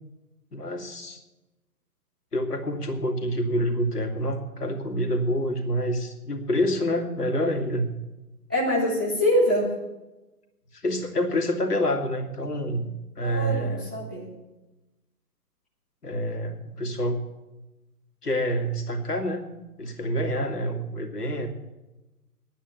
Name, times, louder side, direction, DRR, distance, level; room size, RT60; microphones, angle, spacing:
voice 1, 0.5-1.2 2.3-7.9 10.7-12.9 13.2-13.9 16.0-17.2 18.2-19.5 19.8-21.5, equal, 70° left, 4 dB, 2.4 m, -27 dB
voice 2, 8.5-9.7 13.2-14.3, equal, 5° right, -7 dB, 0.5 m, -24 dB
11.0 x 9.2 x 8.4 m, 1.0 s
figure-of-eight pair, 135°, 48 cm